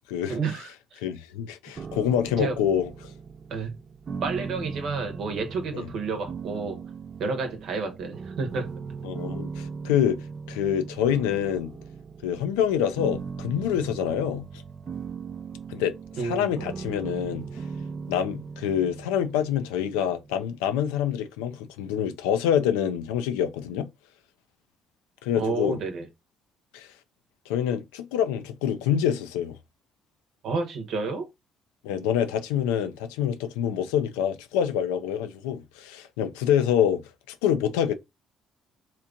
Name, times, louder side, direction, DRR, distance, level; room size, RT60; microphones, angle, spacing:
voice 1, 0.3-1.0 2.4-2.6 3.5-3.8 4.2-6.8 7.2-8.7 16.2-16.5 25.4-26.1 30.4-31.3, right 4 dB, 70° right, 0.9 m, -30 dB
voice 2, 1.0-2.9 5.7-5.9 9.0-11.7 12.2-14.5 15.7-15.9 16.2-17.5 18.1-23.9 25.2-25.8 26.7-26.9 27.5-29.5 31.8-37.0 37.3-37.9, left 9 dB, 90° left, 0.4 m, -26 dB
sound 1, 1.8-20.7, right 5 dB, 45° right, 0.5 m, -39 dB
2.9 x 2.5 x 3.7 m
supercardioid pair, 60°, 0 cm